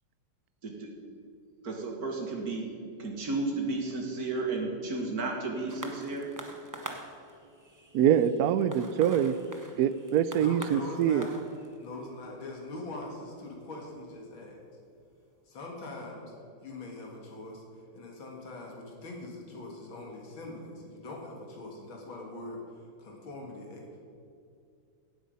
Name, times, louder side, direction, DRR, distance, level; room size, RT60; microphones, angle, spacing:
voice 1, 1.6-2.7 3.0-6.3, right 3 dB, 50° right, 1 dB, 2.2 m, -33 dB
sound 1, 5.7-14.5 15.3-15.4, right 2 dB, 25° right, 0.4 m, -46 dB
voice 2, 7.9-9.4 9.8-11.2, right 9 dB, 90° right, 14 dB, 0.8 m, -24 dB
voice 3, 10.4-11.3 11.8-14.6 15.5-16.3 16.6-22.6 23.0-23.8, left 2 dB, 75° left, -1 dB, 2.6 m, -42 dB
17.0 x 8.3 x 5.4 m, 2.4 s
omnidirectional pair, 2.2 m